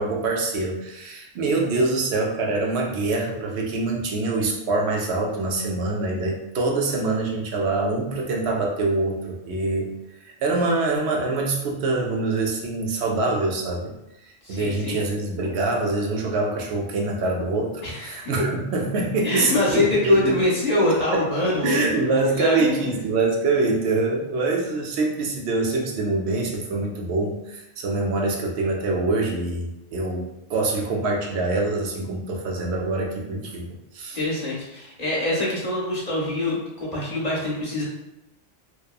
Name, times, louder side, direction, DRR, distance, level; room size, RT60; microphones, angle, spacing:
voice 1, 0.0-9.9 10.4-13.9 14.5-20.4 20.9-21.3 21.6-33.7 33.9-34.2, right 3 dB, 70° right, 0 dB, 0.8 m, -24 dB
voice 2, 14.4-15.0 17.8-18.3 19.2-21.8 22.3-23.1 34.1-37.8, left 2 dB, 40° left, -5 dB, 0.8 m, -24 dB
2.8 x 2.1 x 2.3 m, 0.87 s
omnidirectional pair, 1.2 m